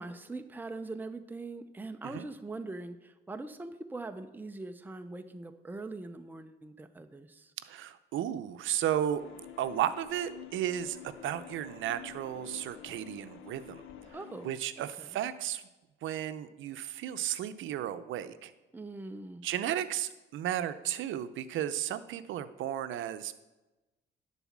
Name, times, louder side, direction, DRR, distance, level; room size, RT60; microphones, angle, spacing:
voice 1, 0.0-7.5 14.1-15.1 18.7-19.4, right 2 dB, 10° right, 8 dB, 0.6 m, -42 dB
voice 2, 7.6-9.2 9.6-13.8 14.4-15.6 16.0-18.5 19.4-23.3, right 11 dB, 80° right, 13 dB, 0.6 m, -34 dB
sound 1, 9.1-14.1, left 2 dB, 50° left, 2.1 m, -55 dB
sound 2, 9.2-14.6, left 14 dB, 80° left, 0.5 m, -50 dB
11.0 x 4.1 x 7.3 m, 1.1 s
cardioid pair, 90°, 20 cm